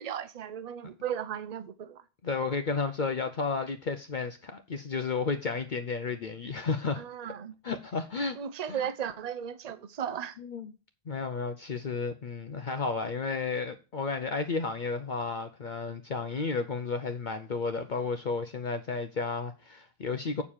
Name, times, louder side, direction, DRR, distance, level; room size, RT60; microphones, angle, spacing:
voice 1, 0.0-2.0 7.0-7.6 8.3-10.4, right 9 dB, 45° right, 0.8 m, -36 dB
voice 2, 2.2-7.0 7.6-8.4 10.4-10.7 11.1-20.4, left 4 dB, 50° left, 0.8 m, -32 dB
8.3 x 4.8 x 7.2 m
omnidirectional pair, 1.1 m